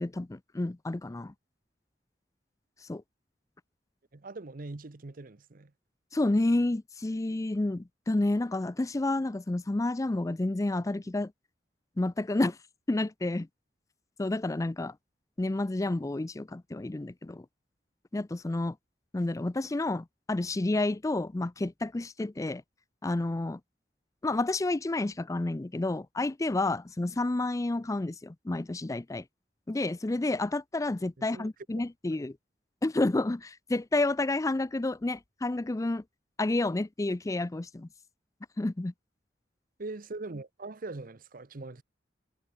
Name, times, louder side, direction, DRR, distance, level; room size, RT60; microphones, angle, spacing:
voice 1, 0.0-1.3 2.9-3.0 6.1-11.3 12.0-12.6 12.9-13.5 14.2-15.0 15.4-17.5 18.1-18.8 19.1-22.6 23.0-23.6 24.2-29.2 29.7-32.4 32.8-36.0 36.4-37.9 38.6-38.9, left 2 dB, 20° left, 0.4 m, -30 dB
voice 2, 4.1-5.7 31.2-31.5 39.8-41.8, right 2 dB, 55° right, 0.9 m, -41 dB
head